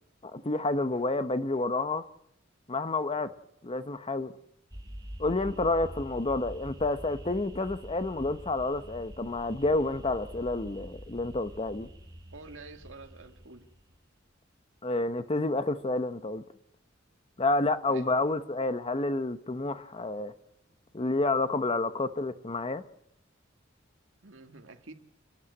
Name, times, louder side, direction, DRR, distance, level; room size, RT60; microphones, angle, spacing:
voice 1, 0.2-2.0 2.7-3.3 3.6-4.3 5.2-11.9 14.8-16.4 17.4-20.3 20.9-22.8, left 2 dB, 30° left, 0.9 m, -29 dB
sound 1, 4.7-14.0, equal, 20° right, 2.3 m, -45 dB
voice 2, 12.3-13.7 17.9-18.2 24.2-24.9, right 3 dB, 75° right, 1.8 m, -48 dB
29.5 x 11.0 x 9.6 m
head